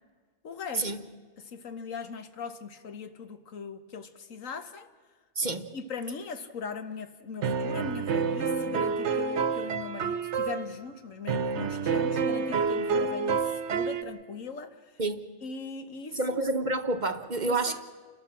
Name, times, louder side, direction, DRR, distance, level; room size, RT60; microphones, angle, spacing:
voice 1, 0.4-0.9 1.4-4.9 5.7-14.9 15.4-16.4 17.4-17.8, left 5 dB, 85° left, 1.6 m, -40 dB
voice 2, 5.4-5.7 15.0-15.2 16.1-17.8, right 2 dB, 40° right, 0.9 m, -28 dB
sound 1, 7.4-10.7 11.3-14.0, right 5 dB, 65° right, 1.2 m, -28 dB
29.5 x 13.0 x 7.4 m
omnidirectional pair, 1.3 m